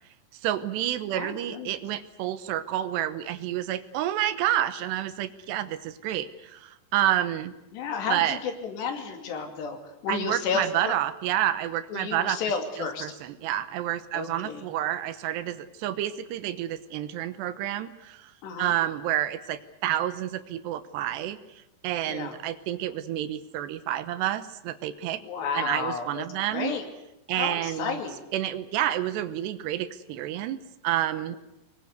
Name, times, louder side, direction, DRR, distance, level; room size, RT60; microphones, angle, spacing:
voice 1, 0.4-7.5 8.1-8.4 10.1-12.4 12.8-18.3 18.6-21.4 21.8-25.2 25.5-26.7 27.3-28.0 28.3-31.4, right 12 dB, 80° right, 13 dB, 3.0 m, -29 dB
voice 2, 1.1-1.7 7.7-10.9 11.9-13.1 14.1-14.7 18.4-18.7 22.1-22.4 25.2-26.8 27.4-28.2, left 5 dB, 75° left, 5 dB, 4.7 m, -32 dB
25.0 x 21.0 x 8.2 m, 0.91 s
omnidirectional pair, 5.0 m